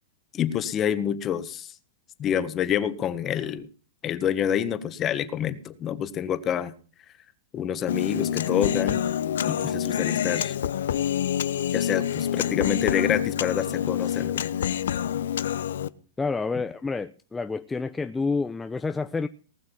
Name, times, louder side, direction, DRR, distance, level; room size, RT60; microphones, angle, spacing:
voice 1, 0.3-1.7 2.2-3.7 4.0-6.7 7.5-9.0 9.4-10.5 11.7-14.5, left 9 dB, 30° left, 1.5 m, -27 dB
Human voice, 7.9-15.9, left 9 dB, 80° left, 0.8 m, -27 dB
voice 2, 16.2-19.3, left 4 dB, 10° left, 0.6 m, -29 dB
19.0 x 6.5 x 7.3 m
hypercardioid pair, 130°, 0 cm